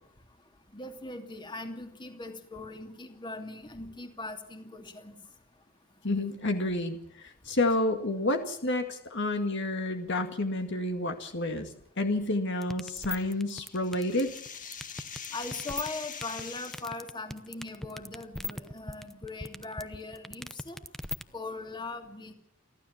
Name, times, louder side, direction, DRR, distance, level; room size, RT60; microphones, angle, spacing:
voice 1, 0.7-5.2 15.3-20.8 21.3-22.3, left 3 dB, 25° left, 5 dB, 2.8 m, -40 dB
voice 2, 6.0-14.3, left 2 dB, 60° left, 6 dB, 2.1 m, -30 dB
sound 1, 12.6-21.2, left 2 dB, ahead, 0.8 m, -38 dB
sound 2, 13.1-17.0, left 7 dB, 40° left, 1.9 m, -43 dB
29.5 x 12.5 x 7.3 m, 0.68 s
head